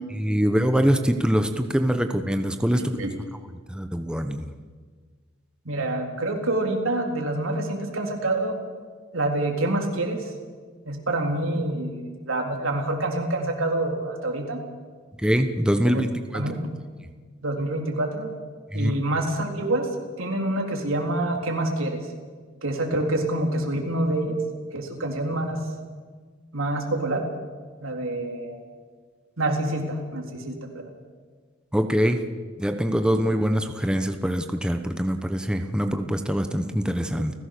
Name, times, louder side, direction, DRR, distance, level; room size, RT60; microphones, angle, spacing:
voice 1, 0.2-2.8 3.7-4.5 15.2-16.4 18.7-18.9 31.7-32.2 32.6-37.3, equal, 5° right, 6 dB, 1.0 m, -23 dB
voice 2, 5.7-8.6 9.1-10.3 10.9-14.6 15.8-16.0 16.3-16.7 17.4-18.3 18.7-19.9 20.2-22.0 22.6-24.4 24.7-25.7 26.5-27.2 27.8-28.7 29.4-30.9 37.2-37.3, right 1 dB, 80° right, 2 dB, 3.8 m, -27 dB
30.0 x 16.0 x 6.8 m, 1.5 s
head